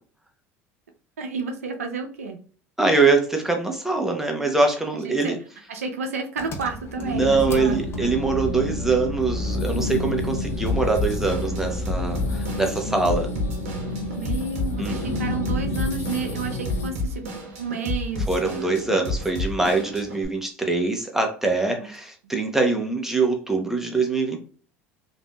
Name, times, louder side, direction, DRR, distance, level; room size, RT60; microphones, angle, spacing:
voice 1, 1.2-2.4 5.0-5.4 5.7-8.1 14.2-17.3 17.6-19.0 21.6-21.9 22.2-22.3, right 4 dB, 90° right, 5 dB, 0.5 m, -31 dB
voice 2, 2.8-5.4 7.0-13.3 14.8-15.2 18.3-24.4, right 3 dB, 5° right, 3 dB, 0.9 m, -23 dB
Engine, 6.4-12.7, left 2 dB, 35° left, 0.8 m, -32 dB
sound 1, 7.0-16.9, left 1 dB, 85° left, 0.8 m, -31 dB
Drum kit / Drum, 10.7-20.3, left 2 dB, 75° right, 1.0 m, -31 dB
3.4 x 2.6 x 2.3 m, 0.41 s
hypercardioid pair, 75°, 8 cm